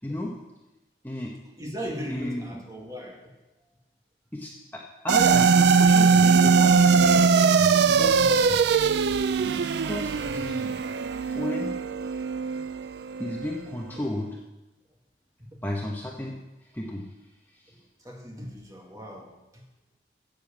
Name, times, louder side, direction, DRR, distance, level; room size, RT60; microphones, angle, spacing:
voice 1, 0.0-0.3 1.0-1.3 2.1-2.6 4.3-6.7 7.9-8.6 9.5-10.8 11.3-11.7 13.2-14.3 15.6-16.3 16.7-17.0, left 1 dB, 10° left, -1 dB, 1.0 m, -33 dB
voice 2, 1.4-3.2 8.0-8.4 15.4-15.6 17.7-19.6, equal, 20° right, 0 dB, 2.0 m, -38 dB
sound 1, 5.1-13.6, right 5 dB, 70° right, 0.4 m, -21 dB
10.5 x 7.8 x 7.3 m, 1.0 s
head